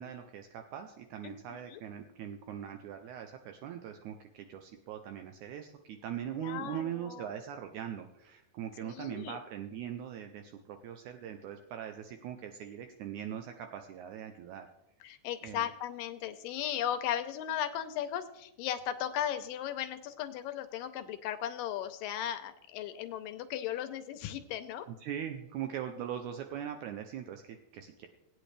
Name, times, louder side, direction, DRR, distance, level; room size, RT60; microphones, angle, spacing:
voice 1, 0.0-14.7 15.4-15.7 25.0-28.1, right 9 dB, 80° right, 6 dB, 1.7 m, -41 dB
voice 2, 1.2-1.8 6.4-7.3 8.8-9.4 15.0-24.9, left 10 dB, 75° left, 9 dB, 2.2 m, -36 dB
17.5 x 9.2 x 3.3 m, 0.84 s
omnidirectional pair, 4.2 m